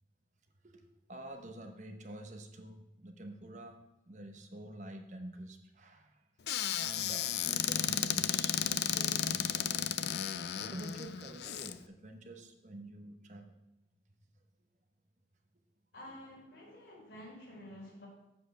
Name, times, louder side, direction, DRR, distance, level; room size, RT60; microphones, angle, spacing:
voice 1, 1.1-6.2 6.8-9.8 10.6-13.6, right 1 dB, 40° right, 5 dB, 0.9 m, -47 dB
Squeak / Cupboard open or close, 6.5-11.7, left 10 dB, 65° left, 0.4 m, -33 dB
voice 2, 15.9-18.1, left 1 dB, 85° left, -4 dB, 4.3 m, -50 dB
7.5 x 6.6 x 6.7 m, 0.88 s
head